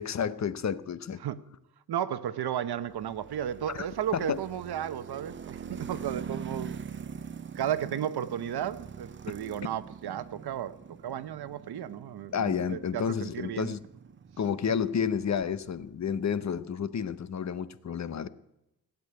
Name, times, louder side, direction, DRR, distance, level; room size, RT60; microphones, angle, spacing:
voice 1, 0.0-1.2 3.7-3.9 4.1-4.4 12.3-13.8 14.4-18.3, left 7 dB, 45° left, 0.7 m, -30 dB
voice 2, 1.9-6.8 7.5-13.7, right 10 dB, 90° right, 0.9 m, -34 dB
sound 1, 2.8-16.0, right 6 dB, 30° right, 0.5 m, -44 dB
15.5 x 8.4 x 9.4 m
wide cardioid pair, 145°, 37 cm